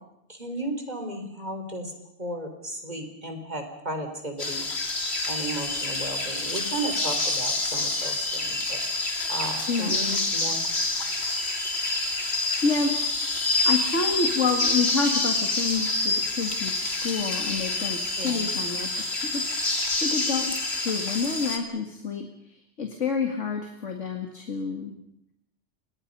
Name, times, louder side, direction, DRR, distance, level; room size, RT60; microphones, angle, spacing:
voice 1, 0.3-1.9 2.2-4.7 5.3-8.8 9.3-10.7 18.2-18.4, right 1 dB, 35° right, 5 dB, 4.1 m, -34 dB
sound 1, 4.4-21.6, left 2 dB, 60° left, 2.8 m, -27 dB
voice 2, 9.7-10.0 11.9-12.1 12.6-12.9 13.6-19.4 19.7-24.9, left 4 dB, 85° left, 4 dB, 2.4 m, -29 dB
30.0 x 25.0 x 5.5 m, 0.80 s
omnidirectional pair, 1.2 m